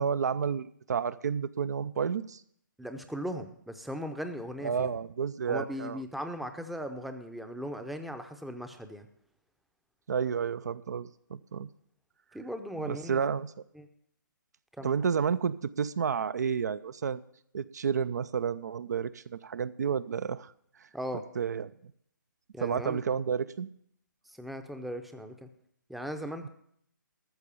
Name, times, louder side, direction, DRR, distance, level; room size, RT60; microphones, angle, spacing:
voice 1, 0.0-2.4 4.6-6.0 10.1-11.7 12.8-13.5 14.8-17.2 17.5-20.5 21.4-21.7 22.6-23.7, right 6 dB, 55° right, 16 dB, 0.4 m, -31 dB
voice 2, 2.8-4.9 5.5-9.1 12.3-13.3 13.7-13.9 14.8-14.9 20.9-21.2 22.5-23.0 24.3-25.5 25.9-26.5, equal, ahead, 7 dB, 0.6 m, -38 dB
13.5 x 6.7 x 6.8 m, 0.68 s
figure-of-eight pair, 140°, 11 cm